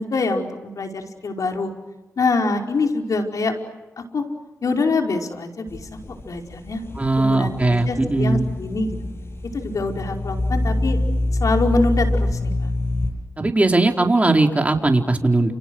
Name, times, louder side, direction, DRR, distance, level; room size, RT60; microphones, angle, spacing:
voice 1, 0.0-1.7 2.2-3.6 4.0-4.3 4.6-6.8 7.2-9.0 9.5-11.0 11.4-12.7, left 3 dB, 70° left, 3 dB, 5.1 m, -24 dB
sound 1, 5.7-13.1, left 1 dB, 45° left, 7.7 m, -25 dB
voice 2, 7.0-8.5 13.4-15.5, right 2 dB, 25° right, 3 dB, 4.4 m, -19 dB
30.0 x 29.5 x 6.4 m, 1.0 s
cardioid pair, 60°, 6 cm